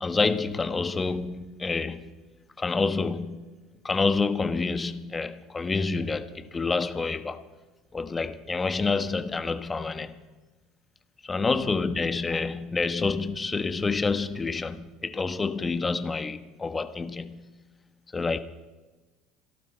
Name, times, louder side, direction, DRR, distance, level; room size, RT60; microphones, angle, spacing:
voice 1, 0.0-2.1 2.6-3.5 3.8-7.4 7.9-10.2 11.3-17.4 18.1-18.4, left 4 dB, 20° left, 1.2 m, -28 dB
27.0 x 12.0 x 4.5 m
hypercardioid pair, 80°, 0 cm